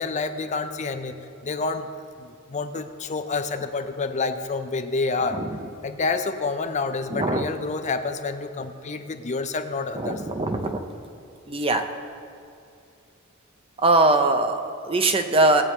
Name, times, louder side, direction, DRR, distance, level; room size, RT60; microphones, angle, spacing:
voice 1, 0.0-1.9 2.2-5.4 5.8-10.2, left 4 dB, 35° left, 8 dB, 0.5 m, -28 dB
voice 2, 7.1-7.4 10.0-10.8 11.5-11.9 13.8-15.6, right 2 dB, 25° right, 6 dB, 0.7 m, -21 dB
19.0 x 8.3 x 3.6 m, 2.6 s
head